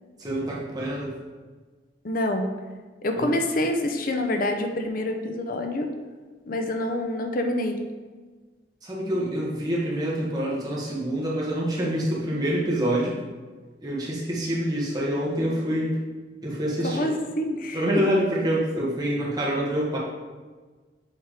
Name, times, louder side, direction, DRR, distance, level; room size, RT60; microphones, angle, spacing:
voice 1, 0.2-1.1 3.2-3.4 8.8-13.2 13.8-16.0 16.4-17.1 17.7-20.0, equal, 20° right, -5 dB, 1.6 m, -26 dB
voice 2, 2.0-2.5 3.0-5.9 6.5-7.8 16.8-17.8, left 1 dB, 50° left, 5 dB, 0.7 m, -26 dB
7.3 x 3.5 x 4.9 m, 1.4 s
head